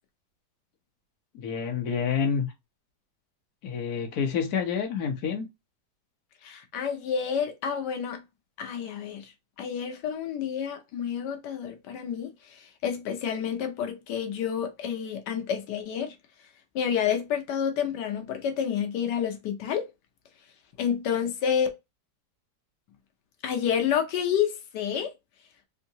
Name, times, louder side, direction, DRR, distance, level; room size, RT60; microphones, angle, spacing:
voice 1, 1.3-2.5 3.6-5.5, left 6 dB, 65° left, 1.3 m, -28 dB
voice 2, 6.4-8.2 8.6-9.3 9.6-16.1 16.7-19.9 20.8-21.7 23.4-25.1, left 8 dB, 85° left, 1.3 m, -29 dB
3.7 x 2.6 x 2.7 m
omnidirectional pair, 1.8 m